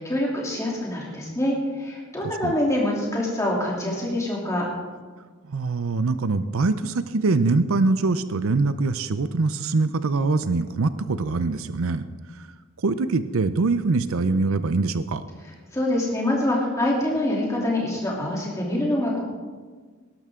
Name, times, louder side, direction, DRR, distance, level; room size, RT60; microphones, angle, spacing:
voice 1, 0.0-4.7 15.7-19.2, left 1 dB, 15° left, -3 dB, 3.0 m, -25 dB
voice 2, 5.5-12.0 12.4-12.5 12.8-15.2, right 3 dB, 70° right, 12 dB, 0.6 m, -23 dB
18.0 x 12.0 x 3.7 m, 1.5 s
head